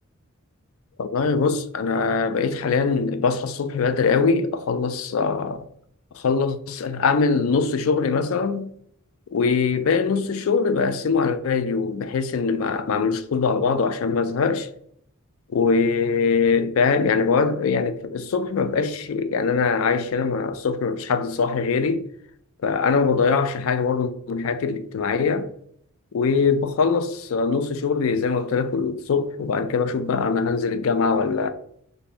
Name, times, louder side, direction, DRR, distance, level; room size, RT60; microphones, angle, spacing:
voice 1, 1.0-5.6 6.1-8.7 9.3-14.7 15.5-22.1 22.6-25.5 26.1-31.5, left 5 dB, 70° left, 0.4 m, -22 dB
3.3 x 2.6 x 4.1 m
head